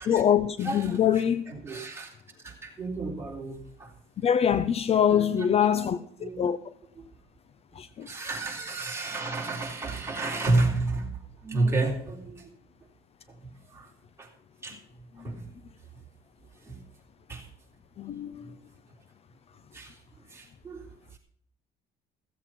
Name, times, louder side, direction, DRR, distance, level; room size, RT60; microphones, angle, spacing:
voice 1, 0.1-1.5 4.2-6.6 7.8-8.1 18.0-18.6, left 9 dB, 40° left, 0.5 m, -24 dB
voice 2, 0.6-3.9 5.0-5.9 6.2-6.5 7.0-7.1 8.0-12.5 13.3-13.9 14.2-14.3 14.6-15.5 16.6-16.8 17.3-17.5 18.4-18.5 19.7-20.0 20.3-21.2, right 2 dB, 15° right, 3.6 m, -32 dB
15.5 x 7.6 x 5.7 m
cardioid pair, 135°, 16 cm